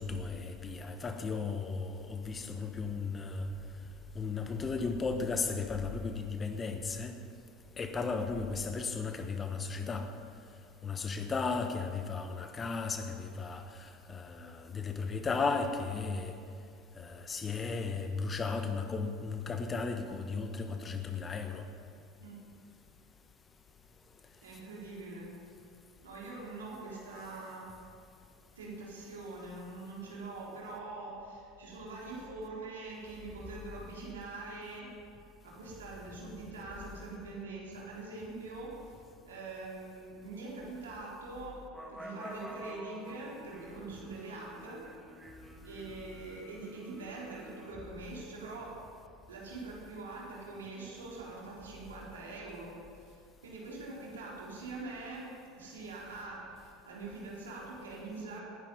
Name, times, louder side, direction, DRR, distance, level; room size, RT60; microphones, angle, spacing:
voice 1, 0.0-3.4 4.1-7.1 7.8-10.1 10.8-13.6 14.1-16.3 17.0-21.6, left 4 dB, 25° left, 7 dB, 1.3 m, -35 dB
voice 2, 24.4-25.3 26.0-27.7 28.6-35.0 35.4-39.0 39.2-44.9 45.6-48.8 49.3-58.4, right 3 dB, 75° right, -4 dB, 3.8 m, -44 dB
sound 1, 41.7-47.8, right 1 dB, 10° right, 2.0 m, -49 dB
19.5 x 10.5 x 5.5 m, 2.3 s
figure-of-eight pair, 75°, 0 cm